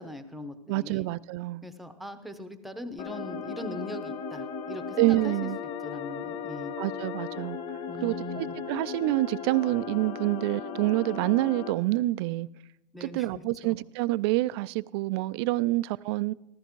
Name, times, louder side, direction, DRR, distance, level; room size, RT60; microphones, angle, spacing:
voice 1, 0.0-1.1 1.6-5.5 5.8-6.8 7.9-8.6 12.9-13.7, left 1 dB, ahead, 0.8 m, -40 dB
voice 2, 0.7-1.6 5.0-5.6 6.8-7.6 8.0-12.5 13.0-16.3, right 18 dB, 40° right, 0.4 m, -27 dB
sound 1, 3.0-11.7, left 6 dB, 35° left, 2.0 m, -36 dB
14.5 x 13.5 x 4.6 m
supercardioid pair, 145°, 21 cm